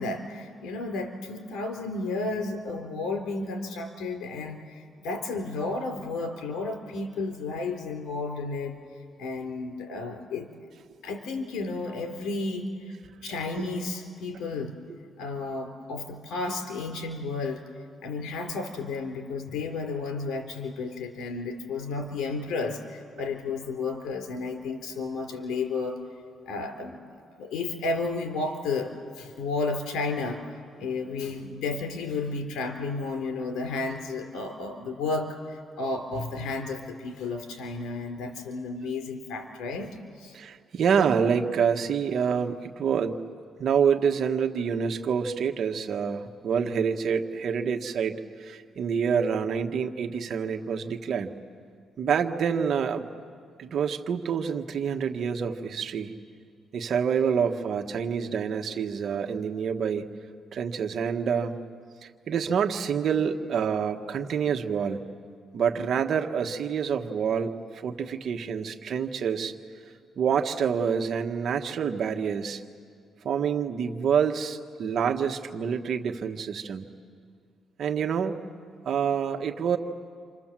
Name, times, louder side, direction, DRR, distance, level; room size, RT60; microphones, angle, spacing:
voice 1, 0.0-8.8 9.2-10.5 11.0-12.9 13.2-14.7 15.2-17.6 18.0-26.0 26.5-27.0 27.4-30.4 30.8-40.3, left 3 dB, 85° left, 4 dB, 3.8 m, -32 dB
voice 2, 40.3-43.2 43.6-51.3 52.0-53.1 53.6-56.2 56.7-60.2 60.5-61.6 62.0-65.0 65.5-69.5 70.2-72.6 73.2-76.9 77.8-78.4 78.8-79.8, right 7 dB, 60° right, 5 dB, 1.6 m, -27 dB
29.0 x 27.0 x 7.6 m, 2.2 s
cardioid pair, 90°, 0 cm